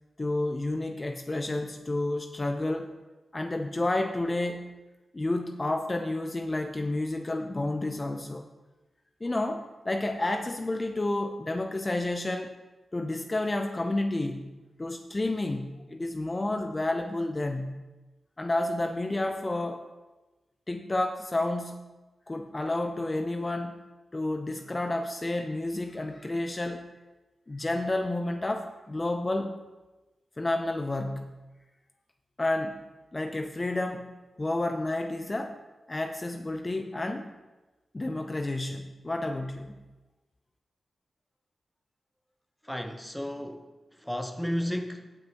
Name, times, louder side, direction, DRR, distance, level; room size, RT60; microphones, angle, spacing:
voice 1, 0.2-2.9 3.3-4.7 5.1-8.5 9.2-12.5 12.9-14.5 14.8-17.8 18.4-19.8 20.7-21.8 22.3-23.8 24.1-26.8 27.5-29.5 30.4-31.4 32.4-32.8 33.1-35.6 35.9-37.3 37.9-39.8, left 2 dB, 30° left, 5 dB, 0.7 m, -30 dB
voice 2, 42.6-43.7 44.0-45.1, equal, 5° left, 6 dB, 0.9 m, -33 dB
15.5 x 6.1 x 3.0 m, 1.1 s
cardioid pair, 60°, 0 cm